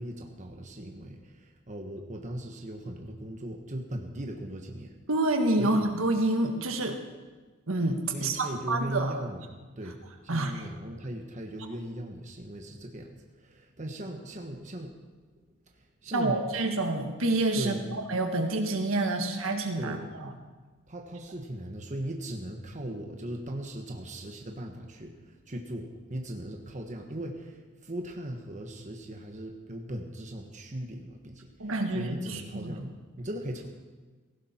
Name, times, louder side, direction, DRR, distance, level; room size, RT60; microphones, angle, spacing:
voice 1, 0.0-4.9 5.6-5.9 8.1-9.4 9.8-10.0 10.2-14.9 16.0-16.4 17.5-18.0 19.8-20.0 20.9-32.9 33.2-33.7, right 1 dB, 35° right, 2 dB, 1.3 m, -38 dB
voice 2, 5.1-7.0 7.7-9.2 10.3-10.7 16.1-20.3 31.6-32.9, right 2 dB, 65° right, 5 dB, 1.6 m, -28 dB
17.5 x 16.0 x 4.4 m, 1.3 s
head